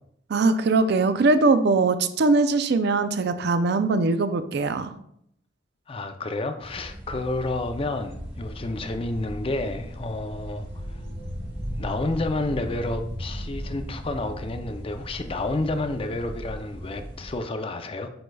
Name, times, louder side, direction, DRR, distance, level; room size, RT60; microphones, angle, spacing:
voice 1, 0.3-4.9, right 3 dB, 60° right, 10 dB, 0.4 m, -21 dB
voice 2, 5.9-11.0 11.8-18.1, left 2 dB, 30° left, 7 dB, 0.5 m, -30 dB
sound 1, 6.6-17.4, equal, 30° right, 1.7 m, -37 dB
7.8 x 5.4 x 2.3 m, 0.72 s
head